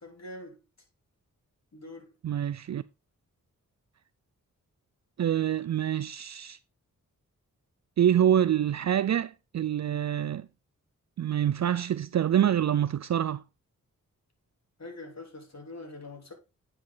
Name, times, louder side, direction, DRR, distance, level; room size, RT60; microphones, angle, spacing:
voice 1, 0.0-0.6 1.7-2.1 14.8-16.3, left 2 dB, 50° left, 3.5 m, -44 dB
voice 2, 2.2-2.8 5.2-6.6 8.0-10.5 11.2-13.4, right 10 dB, 55° right, 0.5 m, -26 dB
9.6 x 5.4 x 3.9 m
cardioid pair, 45°, 33 cm